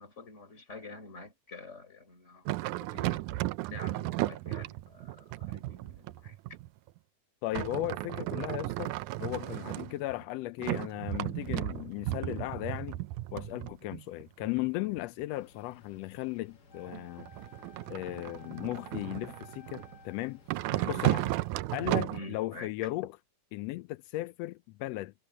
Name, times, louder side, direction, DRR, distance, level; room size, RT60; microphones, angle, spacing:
voice 1, 0.0-3.2 3.6-6.4 20.7-21.0 22.1-22.7, left 2 dB, 20° left, 4.2 m, -47 dB
sound 1, 2.5-6.9 7.5-10.2 10.6-15.2 16.9-20.0 20.5-22.2, right 18 dB, 85° right, 2.1 m, -34 dB
voice 2, 7.4-8.9 9.2-13.0 13.3-17.3 17.9-20.4 20.9-21.3 21.7-23.1 23.5-25.1, left 17 dB, 85° left, 1.4 m, -36 dB
sound 2, 15.3-21.6, left 3 dB, 40° left, 1.7 m, -59 dB
Wind instrument woodwind instrument, 16.7-20.5, left 2 dB, 20° right, 4.2 m, -55 dB
omnidirectional pair, 3.5 m